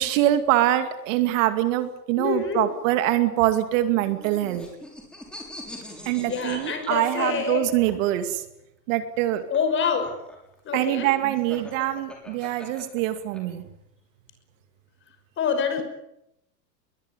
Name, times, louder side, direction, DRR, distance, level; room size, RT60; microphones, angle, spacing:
voice 1, 0.0-4.7 6.1-8.4 8.9-9.4 10.7-13.7, right 13 dB, 50° right, 9 dB, 2.4 m, -24 dB
voice 2, 2.2-2.7 6.2-7.7 9.5-10.2 10.6-11.1 15.4-15.8, left 6 dB, 25° left, 7 dB, 5.8 m, -26 dB
sound 1, 3.9-7.9 9.2-13.4, left 1 dB, ahead, 6.7 m, -42 dB
22.5 x 20.0 x 9.8 m, 0.84 s
supercardioid pair, 145°, 49 cm